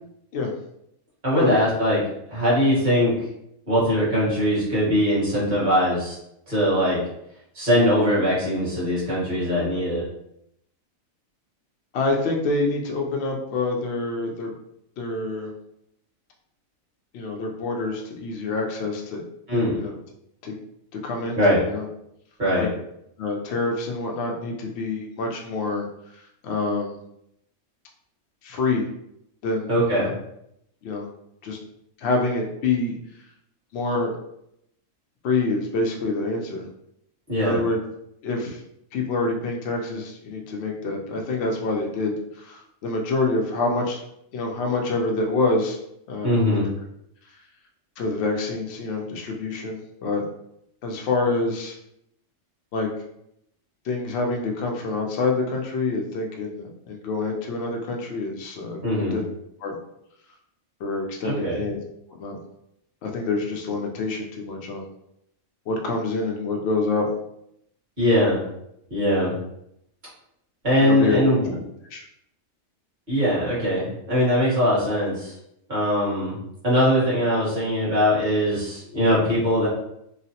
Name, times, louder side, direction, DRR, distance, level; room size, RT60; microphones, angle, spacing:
voice 1, 1.2-2.0 2.3-3.1 3.7-6.2 6.5-7.0 7.5-10.0 19.5-19.7 21.4-21.6 22.4-22.7 29.7-30.1 37.3-37.6 46.2-46.7 58.8-59.2 61.2-61.6 68.0-68.4 68.9-69.3 70.6-71.6 73.1-75.3 75.7-76.4 76.6-79.7, equal, 35° right, -8 dB, 1.4 m, -21 dB
voice 2, 11.9-14.5 15.0-15.5 17.1-19.2 19.5-20.0 20.4-20.5 20.9-21.8 22.6-22.7 23.2-25.9 26.4-27.0 28.4-28.8 29.4-30.1 30.8-31.1 31.4-31.6 32.0-32.9 33.7-34.1 35.2-36.7 37.4-37.8 38.2-38.6 38.9-44.0 44.3-45.8 46.1-46.4 48.0-50.2 50.8-51.8 52.7-52.9 53.8-58.8 59.1-59.2 59.6-59.8 60.8-61.8 62.2-62.4 63.0-64.8 65.7-67.1 70.8-71.2 71.9-72.0, left 3 dB, 60° left, 1 dB, 0.8 m, -26 dB
3.1 x 2.0 x 2.8 m, 0.77 s
omnidirectional pair, 1.4 m